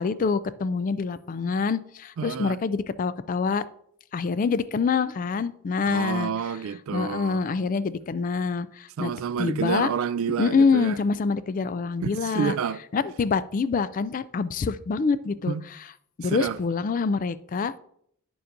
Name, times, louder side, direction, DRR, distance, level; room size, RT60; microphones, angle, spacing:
voice 1, 0.0-3.6 4.1-6.3 6.9-9.1 9.4-9.9 10.4-12.6 12.9-15.5 16.2-17.8, left 5 dB, 35° left, 0.3 m, -26 dB
voice 2, 2.2-2.6 5.9-7.4 9.0-11.0 12.0-12.8 15.5-15.6 16.2-16.6, right 7 dB, 65° right, 0.3 m, -29 dB
10.0 x 6.8 x 2.6 m
head